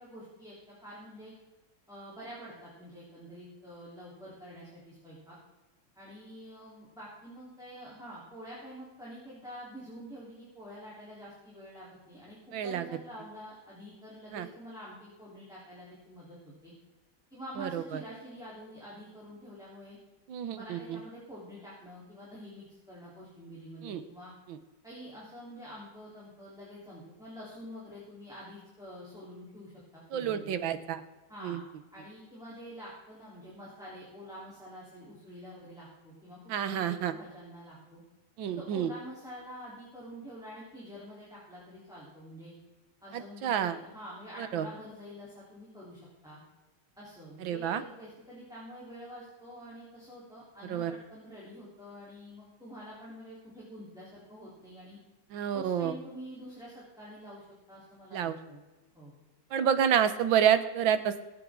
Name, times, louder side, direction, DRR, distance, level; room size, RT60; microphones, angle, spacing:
voice 1, 0.0-1.3 1.9-5.4 5.9-12.4 12.6-16.7 17.3-20.0 20.5-24.3 24.8-30.6 31.3-31.6 31.9-36.4 36.6-38.0 38.5-42.5 43.0-46.4 47.0-55.0 55.5-58.6 58.9-59.1, equal, ahead, -8 dB, 3.4 m, -47 dB
voice 2, 12.5-12.8 14.3-14.5 17.6-17.8 20.3-20.8 23.8-24.0 30.1-31.0 31.4-31.6 36.5-37.1 38.4-38.9 43.1-43.8 44.5-44.7 47.4-47.8 50.6-50.9 55.3-55.9 58.1-58.4 59.5-61.3, right 9 dB, 75° right, 11 dB, 1.6 m, -28 dB
22.5 x 8.4 x 3.7 m, 1.2 s
omnidirectional pair, 2.2 m